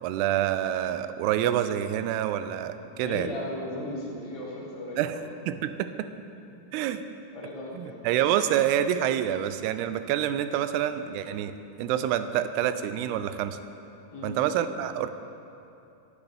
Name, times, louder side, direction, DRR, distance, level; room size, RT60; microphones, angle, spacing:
voice 1, 0.0-3.3 5.0-5.2 5.5-6.1 6.7-7.0 7.7-11.5 11.8-13.6 14.2-15.1, right 11 dB, 90° right, 11 dB, 2.6 m, -27 dB
voice 2, 2.8-5.0 6.5-6.6 7.3-8.0 14.1-14.4, left 1 dB, 20° left, -5 dB, 0.9 m, -36 dB
25.0 x 8.4 x 3.5 m, 2.8 s
omnidirectional pair, 4.6 m